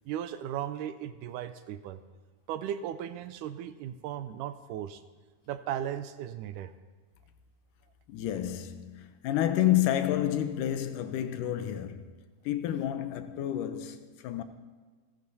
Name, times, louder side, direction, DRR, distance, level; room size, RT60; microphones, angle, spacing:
voice 1, 0.1-2.0 2.5-5.0 5.5-6.7, right 10 dB, 80° right, 2.0 m, -36 dB
voice 2, 8.1-12.1 12.5-14.4, left 12 dB, 80° left, 2.2 m, -29 dB
28.0 x 10.5 x 2.7 m
omnidirectional pair, 3.8 m